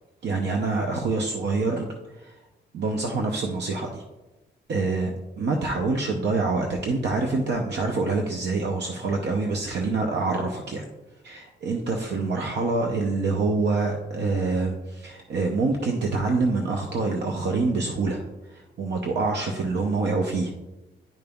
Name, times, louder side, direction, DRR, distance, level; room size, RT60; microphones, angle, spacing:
voice 1, 0.2-1.9 2.2-2.4 2.7-4.0 4.7-5.1 5.4-10.8 11.2-18.2 18.5-20.5, right 3 dB, 70° right, 2 dB, 0.7 m, -26 dB
10.5 x 5.2 x 2.3 m, 1.1 s
wide cardioid pair, 180°, 18 cm